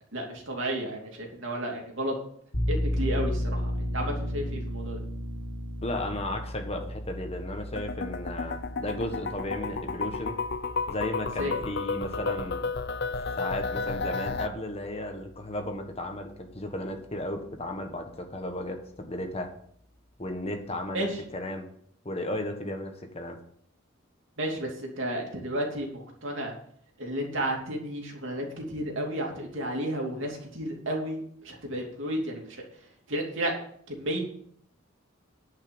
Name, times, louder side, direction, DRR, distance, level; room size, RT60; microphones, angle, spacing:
voice 1, 0.1-2.1 2.7-5.0 11.4-11.5 20.9-21.1 24.4-26.5 27.0-32.6 33.1-33.5 33.9-34.2, right 1 dB, 65° right, 0 dB, 2.9 m, -32 dB
sound 1, 2.5-13.8, equal, 85° left, 2.6 m, -34 dB
voice 2, 5.8-10.4 10.9-12.6 13.1-19.5 20.2-21.1 21.3-21.7 22.0-23.4, left 1 dB, 30° left, 4 dB, 1.4 m, -34 dB
sound 2, 7.7-14.5, left 4 dB, 55° left, 0.6 m, -32 dB
10.5 x 5.7 x 7.9 m, 0.64 s
head